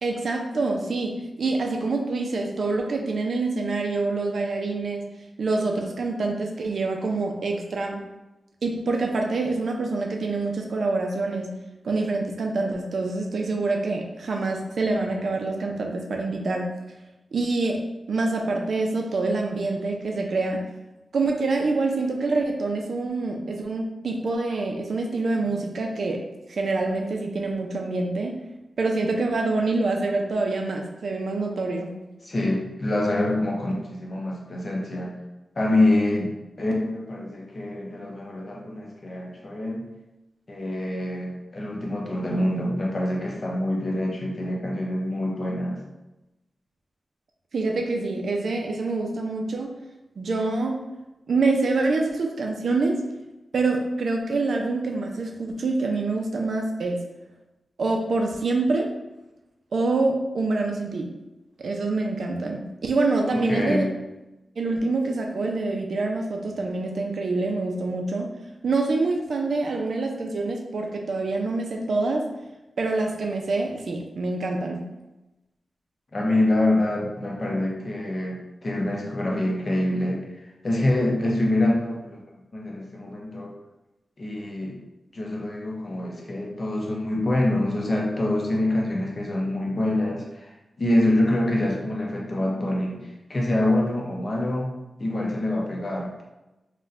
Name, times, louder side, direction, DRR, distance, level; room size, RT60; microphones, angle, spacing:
voice 1, 0.0-5.1 5.4-8.0 8.6-11.5 11.8-16.7 17.3-17.8 18.1-20.6 21.1-26.2 26.5-28.4 28.8-31.9 47.5-49.7 50.2-50.8 51.3-53.0 53.5-57.0 57.8-58.9 59.7-61.1 61.6-63.8 64.6-68.4 68.6-72.3 72.8-74.8, right 3 dB, 65° right, 2 dB, 0.4 m, -26 dB
voice 2, 32.2-35.2 35.6-39.9 40.5-45.8 63.3-63.9 76.1-80.2 80.6-82.2 82.5-83.5 84.2-84.8 85.1-94.7 95.0-96.2, left 1 dB, 35° left, -1 dB, 0.5 m, -25 dB
4.0 x 2.1 x 2.4 m, 1.0 s
wide cardioid pair, 165°, 0 cm